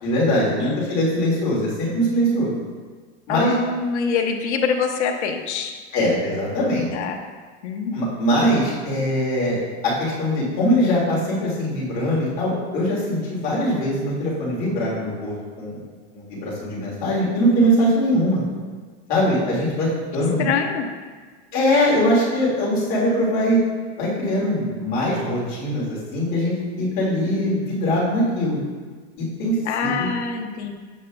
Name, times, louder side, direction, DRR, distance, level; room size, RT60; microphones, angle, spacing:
voice 1, 0.0-2.5 3.3-3.5 5.9-6.9 7.9-15.8 16.1-18.4 19.1-20.5 21.5-23.6 24.0-28.6 29.2-29.6 29.8-30.1, equal, 25° left, -6 dB, 2.0 m, -22 dB
voice 2, 0.6-0.9 3.3-5.8 6.9-7.2 7.6-8.0 20.4-20.9 29.6-30.7, left 5 dB, 80° left, 4 dB, 0.9 m, -25 dB
7.8 x 7.3 x 2.2 m, 1.5 s
supercardioid pair, 175°, 34 cm